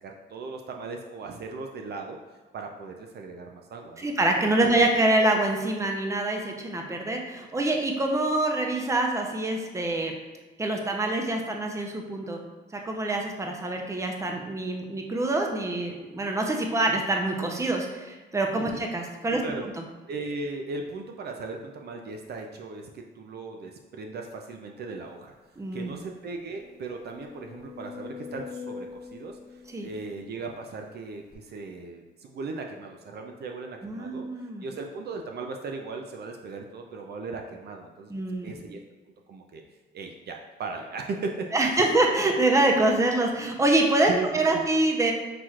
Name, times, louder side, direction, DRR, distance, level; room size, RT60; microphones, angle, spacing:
voice 1, 0.0-2.2 2.5-4.1 18.5-18.6 19.3-19.7 20.1-25.3 25.7-34.2 34.6-38.1 38.4-38.8 39.3-39.6 39.9-41.9 44.0-44.6, right 3 dB, 55° right, 2 dB, 0.5 m, -37 dB
voice 2, 4.0-10.1 10.6-12.4 12.7-19.4 25.6-25.9 29.7-29.9 33.8-34.6 38.1-38.6 41.5-45.1, right 2 dB, 15° right, 2 dB, 0.6 m, -25 dB
sound 1, 25.3-25.4 25.8-25.9 26.4-30.6 31.3-31.4, left 6 dB, 50° left, 0.7 m, -43 dB
5.8 x 3.1 x 2.4 m, 1.3 s
cardioid pair, 90°, 20 cm